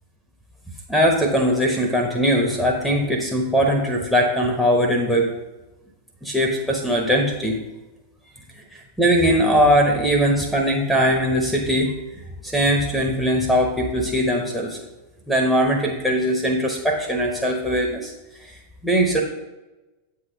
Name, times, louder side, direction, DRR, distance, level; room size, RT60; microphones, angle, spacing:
voice 1, 0.9-5.3 6.2-7.6 8.6-11.9 12.4-14.8 15.3-18.1 18.4-18.6 18.8-19.2, equal, ahead, 1 dB, 1.0 m, -20 dB
8.3 x 3.7 x 5.6 m, 1.1 s
figure-of-eight pair, 90°, 0 cm